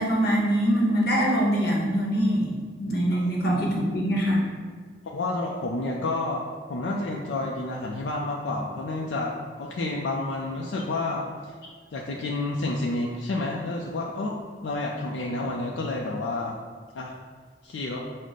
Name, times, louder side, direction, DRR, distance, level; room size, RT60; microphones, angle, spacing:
voice 1, 0.0-2.5 2.8-4.4, equal, 60° left, -2 dB, 0.9 m, -23 dB
voice 2, 5.0-11.5 11.9-16.6 16.9-17.1 17.6-18.0, left 2 dB, 80° left, -1 dB, 0.4 m, -30 dB
6.1 x 2.1 x 4.0 m, 1.5 s
head